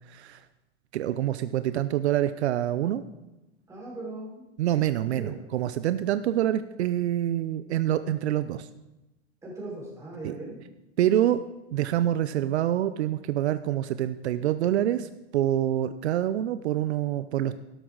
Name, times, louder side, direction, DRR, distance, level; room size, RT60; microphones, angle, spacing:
voice 1, 0.1-0.4 0.9-3.0 4.6-8.7 10.2-10.4 11.0-11.4 11.7-17.6, right 12 dB, 75° right, 12 dB, 0.6 m, -26 dB
voice 2, 3.7-4.4 5.1-5.3 9.4-10.6, right 2 dB, 10° right, -5 dB, 4.8 m, -39 dB
12.5 x 10.5 x 3.9 m, 1.0 s
hypercardioid pair, 145°, 33 cm